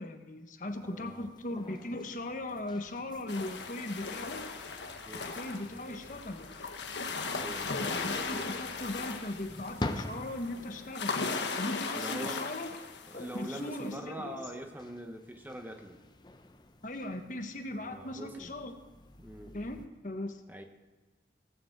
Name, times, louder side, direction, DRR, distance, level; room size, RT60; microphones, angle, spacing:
voice 1, 0.0-4.4 5.3-6.5 7.6-11.2 11.6-12.8 13.1-14.4 16.8-18.7 19.5-20.4, left 1 dB, 45° left, 6 dB, 1.1 m, -38 dB
sound 1, 0.6-19.9, left 1 dB, 25° left, 0.7 m, -47 dB
voice 2, 0.8-1.3 5.1-5.3 7.3-8.3 11.9-12.5 13.1-16.0 17.8-18.5 19.2-19.6 20.5-20.6, right 1 dB, 10° right, 5 dB, 0.9 m, -43 dB
sound 2, 3.3-13.9, left 4 dB, 80° left, 1.3 m, -38 dB
16.5 x 7.0 x 7.9 m, 1.2 s
head